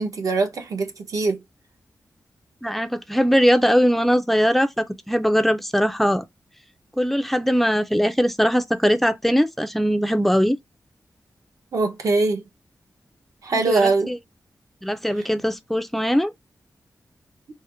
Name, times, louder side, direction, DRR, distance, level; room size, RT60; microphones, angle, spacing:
voice 1, 0.0-1.4 11.7-12.4 13.4-14.1, right 3 dB, 65° right, 0.9 m, -22 dB
voice 2, 2.6-6.2 7.0-10.6 13.7-14.2 14.8-16.3, equal, 5° left, 0.4 m, -20 dB
4.1 x 2.1 x 2.5 m
wide cardioid pair, 145°, 6 cm